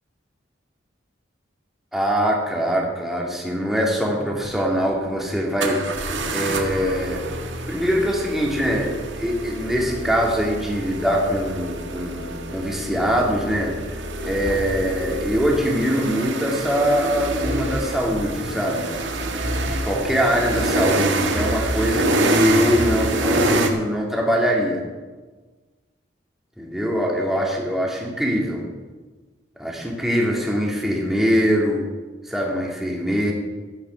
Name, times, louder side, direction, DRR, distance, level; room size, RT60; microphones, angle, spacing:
voice 1, 1.9-5.8 6.3-7.2 7.7-13.7 14.2-18.9 19.6-24.8 26.6-28.7 29.6-31.8 32.2-33.3, equal, ahead, -2 dB, 2.3 m, -23 dB
sound 1, 4.4-4.5 5.6-23.7, right 2 dB, 80° right, 1.6 m, -26 dB
13.0 x 9.5 x 5.8 m, 1.3 s
head